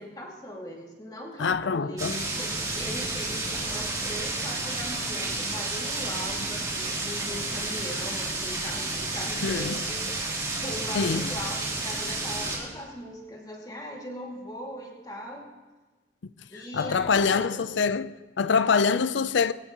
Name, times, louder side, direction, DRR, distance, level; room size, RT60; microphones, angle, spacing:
voice 1, 0.0-10.0 10.6-15.5 16.5-17.6 18.5-18.6, equal, 20° left, 2.3 m, -39 dB
voice 2, 1.4-2.2 9.4-9.8 10.9-11.3 16.7-19.5, left 5 dB, 90° left, 0.5 m, -25 dB
sound 1, 2.0-12.6, right 2 dB, 20° right, 3.1 m, -31 dB
20.5 x 17.0 x 3.0 m
head